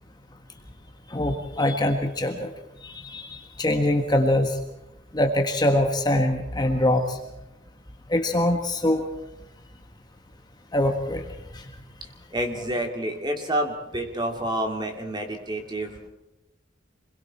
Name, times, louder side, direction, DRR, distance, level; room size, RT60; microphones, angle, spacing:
voice 1, 1.1-2.5 2.8-4.6 5.1-7.2 8.1-9.0 10.7-11.2 11.5-11.6, left 1 dB, 20° left, 4 dB, 1.5 m, -23 dB
voice 2, 12.3-16.1, right 1 dB, 20° right, 3 dB, 2.8 m, -29 dB
28.0 x 22.0 x 4.4 m, 0.92 s
head